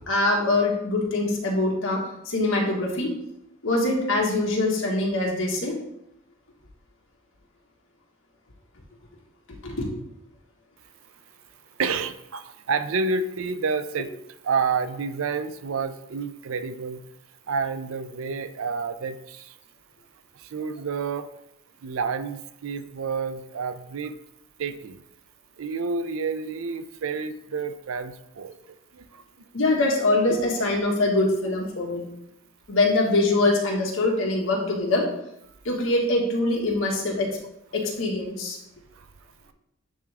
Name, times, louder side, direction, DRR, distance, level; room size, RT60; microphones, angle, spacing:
voice 1, 0.1-3.2 3.6-5.8 9.6-9.9 29.5-32.1 32.7-35.1 35.6-37.4 37.7-38.6, left 2 dB, 65° left, -1 dB, 1.6 m, -23 dB
voice 2, 11.8-14.1 14.4-17.0 17.5-19.5 20.4-21.3 21.8-24.1 24.6-25.0 25.6-28.5 28.9-29.0, right 5 dB, 70° right, 12 dB, 0.5 m, -29 dB
10.5 x 3.6 x 3.5 m, 0.82 s
head